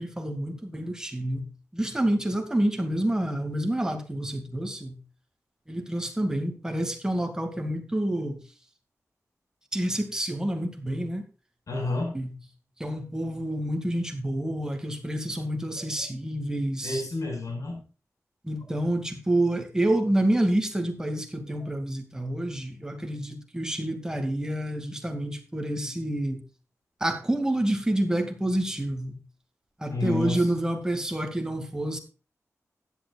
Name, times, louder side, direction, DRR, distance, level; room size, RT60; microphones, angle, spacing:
voice 1, 0.0-5.0 5.7-8.4 9.7-11.2 12.1-12.3 12.8-17.0 18.4-26.4 27.0-29.2 29.8-32.0, right 1 dB, 10° right, 2.3 m, -28 dB
voice 2, 11.7-12.2 16.8-17.8 29.9-30.5, left 3 dB, 75° left, 6.0 m, -30 dB
15.5 x 11.0 x 2.4 m
wide cardioid pair, 125°, 6 cm